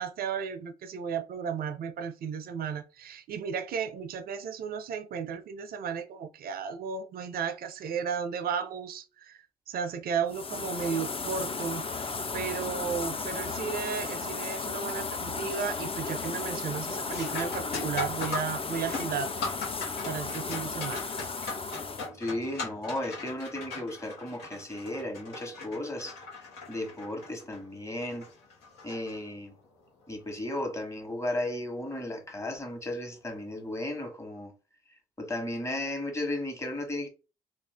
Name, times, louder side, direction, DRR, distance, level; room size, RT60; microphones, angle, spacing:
voice 1, 0.0-19.4 20.0-21.1, right 7 dB, 65° right, 0.5 m, -34 dB
sound 1, 10.3-22.1, left 4 dB, 35° left, 0.5 m, -35 dB
sound 2, 14.6-15.0 15.4-15.8 16.1-29.7 32.2-32.3 33.1-33.3, left 3 dB, 85° left, 0.9 m, -40 dB
voice 2, 22.2-26.2 26.7-28.3 28.8-29.5 30.1-34.5 35.2-37.1, left 1 dB, 15° left, 1.2 m, -34 dB
2.5 x 2.3 x 3.3 m
supercardioid pair, 45°, 16 cm